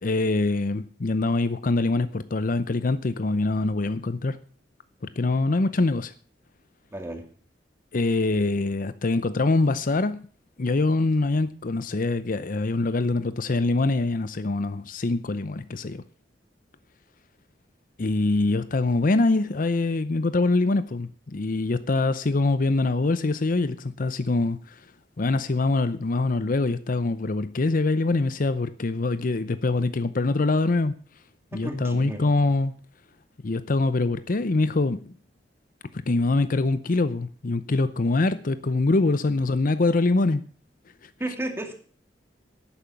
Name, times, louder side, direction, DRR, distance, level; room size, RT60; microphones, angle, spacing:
voice 1, 0.0-4.4 5.0-6.1 7.9-10.2 10.6-16.0 18.0-24.8 25.2-31.0 31.5-32.7 33.4-35.1 35.9-40.4 41.0-41.1, left 2 dB, 50° left, 0.7 m, -24 dB
voice 2, 6.9-7.2 31.5-32.2 41.2-41.7, right 1 dB, 15° right, 2.4 m, -32 dB
11.5 x 9.2 x 7.1 m
head